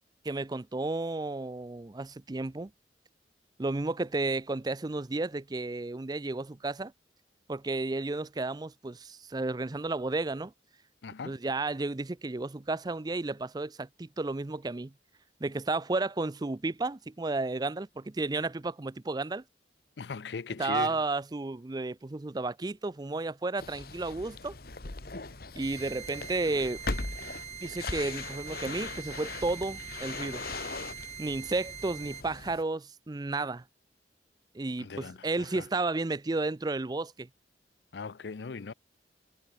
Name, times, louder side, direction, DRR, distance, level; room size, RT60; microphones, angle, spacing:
voice 1, 0.2-2.7 3.6-6.9 7.5-10.5 11.2-14.9 15.4-19.4 20.6-24.5 25.6-26.8 27.6-30.4 31.2-33.6 34.5-37.3, right 3 dB, 20° right, 0.5 m, -32 dB
voice 2, 11.0-11.4 20.0-21.0 34.8-35.7 37.9-38.7, left 5 dB, 70° left, 0.5 m, -39 dB
sound 1, 23.6-32.6, left 3 dB, 55° left, 1.6 m, -40 dB
sound 2, 25.6-32.2, right 8 dB, 40° right, 5.2 m, -44 dB
head